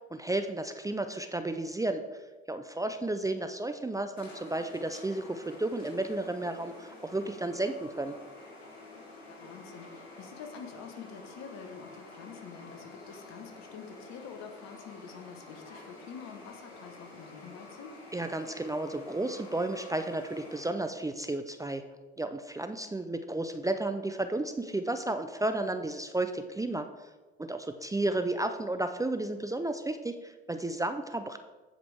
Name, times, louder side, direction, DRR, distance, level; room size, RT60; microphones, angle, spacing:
voice 1, 0.1-2.2 2.5-8.2 18.1-21.8 22.2-26.9 27.4-31.4, right 2 dB, 10° right, 8 dB, 0.5 m, -32 dB
sound 1, 4.2-20.7, left 2 dB, 90° left, 1.4 m, -49 dB
voice 2, 9.3-18.0, left 6 dB, 60° left, 6 dB, 1.3 m, -47 dB
14.5 x 5.0 x 3.5 m, 1.2 s
hypercardioid pair, 60°, 31 cm